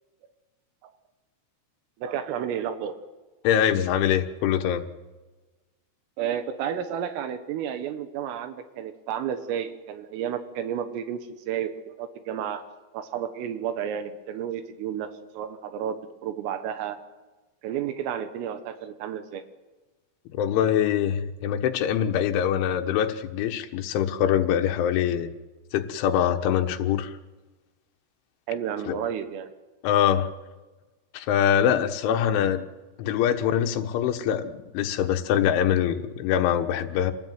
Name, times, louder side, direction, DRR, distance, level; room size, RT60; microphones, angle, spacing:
voice 1, 2.0-3.0 6.2-12.6 12.9-17.0 17.6-19.4 28.5-29.5, right 9 dB, 85° right, 9 dB, 4.0 m, -31 dB
voice 2, 3.5-4.9 20.3-25.3 25.7-27.1 28.9-29.0 29.8-30.3 31.1-32.6 33.0-37.1, left 9 dB, 75° left, 7 dB, 3.5 m, -24 dB
27.0 x 19.5 x 9.4 m, 1.2 s
omnidirectional pair, 5.8 m